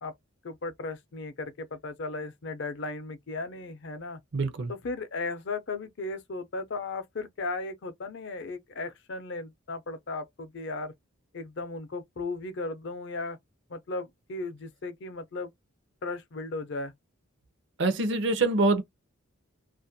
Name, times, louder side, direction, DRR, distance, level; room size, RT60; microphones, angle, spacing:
voice 1, 0.4-4.2 4.7-10.9 11.3-13.4 13.7-15.5 16.0-16.9, left 3 dB, 55° left, 0.5 m, -36 dB
voice 2, 4.3-4.7 17.8-18.8, right 3 dB, 55° right, 0.5 m, -25 dB
2.4 x 2.1 x 2.6 m
head